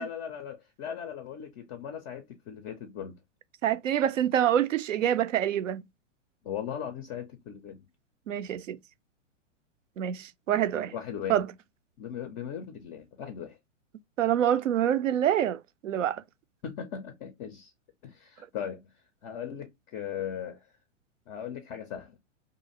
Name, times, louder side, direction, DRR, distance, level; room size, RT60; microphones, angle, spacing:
voice 1, 0.0-3.2 6.4-7.8 10.9-11.5 12.0-13.6 16.6-17.7 18.0-18.9 19.2-20.7 21.3-22.2, left 8 dB, 25° left, 0.4 m, -38 dB
voice 2, 3.6-5.8 8.3-8.8 10.0-10.9 11.3-11.5 14.2-16.2, right 10 dB, 80° right, 0.5 m, -26 dB
2.5 x 2.4 x 2.7 m
hypercardioid pair, 110°, 37 cm